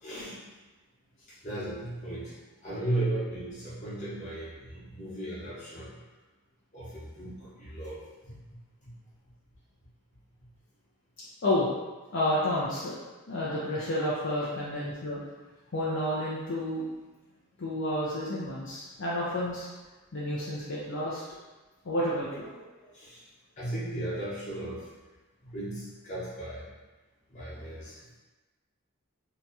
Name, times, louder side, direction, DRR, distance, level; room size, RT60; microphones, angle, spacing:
voice 1, 0.0-0.4 1.3-6.0 6.7-8.6 8.8-8.9 22.9-23.3 23.6-24.9 25.4-26.7 27.3-28.0, right 1 dB, 35° left, -9 dB, 1.0 m, -36 dB
voice 2, 12.1-13.0 13.3-15.2 15.7-16.8 17.6-19.7 20.1-21.2 21.8-22.7, left 1 dB, 55° left, -7 dB, 0.5 m, -30 dB
2.8 x 2.3 x 4.1 m, 1.2 s
head